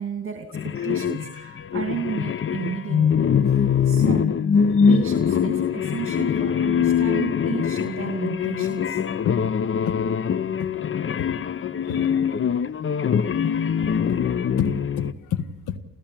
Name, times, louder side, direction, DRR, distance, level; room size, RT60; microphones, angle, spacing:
voice 1, 0.0-3.4 3.8-4.4 4.9-9.0, right 7 dB, 45° right, 2.5 m, -33 dB
sound 1, 0.5-15.1, left 7 dB, 40° left, 0.9 m, -23 dB
voice 2, 13.8-14.2 14.6-15.8, left 9 dB, 80° left, 1.7 m, -29 dB
29.0 x 14.5 x 8.9 m
cardioid pair, 90°, 30 cm